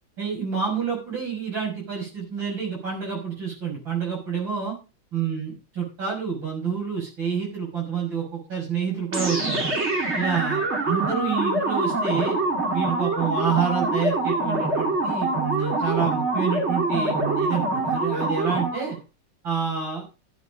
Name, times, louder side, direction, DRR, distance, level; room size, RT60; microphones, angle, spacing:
voice 1, 0.2-4.8 5.1-9.7 10.2-12.4 12.7-19.0 19.4-20.1, right 6 dB, 85° right, -3 dB, 6.9 m, -28 dB
sound 1, 9.1-19.0, right 2 dB, 35° right, 2.5 m, -25 dB
13.0 x 8.4 x 5.2 m, 0.31 s
omnidirectional pair, 2.1 m